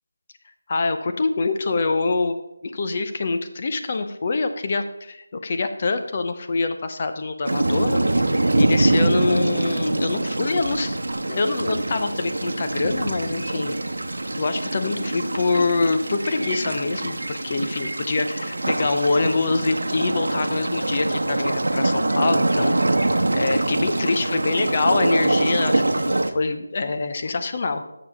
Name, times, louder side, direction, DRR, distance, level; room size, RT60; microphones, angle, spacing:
voice 1, 0.7-2.3 2.6-11.0 11.3-13.8 14.4-17.2 17.4-22.7 23.3-27.8, left 3 dB, 30° left, 7 dB, 0.6 m, -25 dB
sound 1, 7.4-26.3, right 2 dB, 80° right, 0.9 m, -24 dB
6.9 x 6.8 x 5.5 m, 0.87 s
figure-of-eight pair, 175°, 0 cm